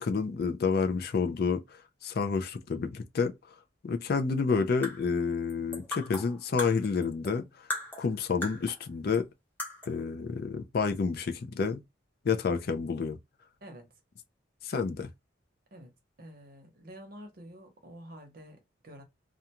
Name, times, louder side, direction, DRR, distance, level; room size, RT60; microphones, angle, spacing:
voice 1, 0.0-3.3 3.8-7.4 8.0-9.3 9.9-11.8 12.2-13.2 14.6-15.1, left 5 dB, 50° left, 0.4 m, -29 dB
sound 1, 4.6-7.4 7.7-8.9 9.1-9.2 9.6-10.0, left 1 dB, 10° left, 0.7 m, -39 dB
voice 2, 16.2-19.0, equal, 50° right, 0.8 m, -48 dB
2.4 x 2.2 x 2.8 m
head